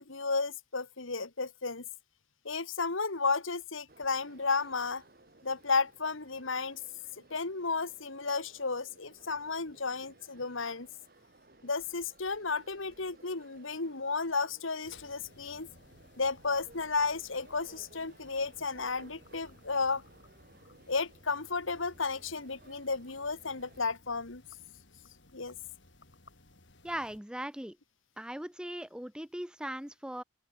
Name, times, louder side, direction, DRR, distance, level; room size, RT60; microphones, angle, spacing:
voice 1, 0.0-1.9 2.5-5.0 5.4-6.8 7.3-10.9 11.6-15.7 16.2-20.0 20.9-24.4 25.3-25.5, left 4 dB, 80° left, 1.8 m, -33 dB
sound 1, 3.9-23.8, right 2 dB, 45° right, 3.5 m, -60 dB
sound 2, 14.8-27.2, left 2 dB, 60° left, 4.0 m, -59 dB
voice 2, 26.8-27.8 28.2-30.2, right 1 dB, 5° right, 0.8 m, -39 dB
open air
head